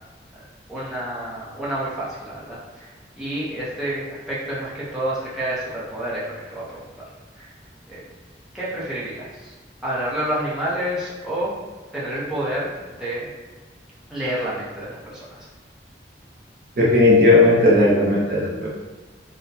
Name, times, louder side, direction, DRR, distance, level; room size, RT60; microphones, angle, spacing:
voice 1, 0.7-6.8 7.4-7.5 7.9-8.0 8.5-9.5 9.8-11.5 11.9-13.3 14.1-15.5, right 1 dB, 5° right, -9 dB, 0.7 m, -29 dB
voice 2, 16.8-18.7, left 2 dB, 50° right, -4 dB, 0.6 m, -15 dB
4.1 x 2.1 x 2.6 m, 1.3 s
head